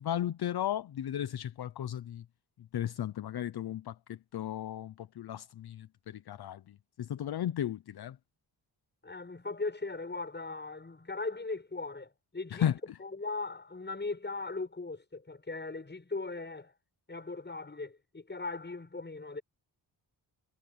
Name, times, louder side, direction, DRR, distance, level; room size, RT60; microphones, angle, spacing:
voice 1, 0.0-2.2 2.7-6.6 7.0-8.2 12.6-12.7, left 11 dB, 60° left, 0.8 m, -35 dB
voice 2, 9.0-12.7 13.0-16.7 17.1-19.4, left 3 dB, 25° left, 7.4 m, -39 dB
cardioid pair, 105°, 42 cm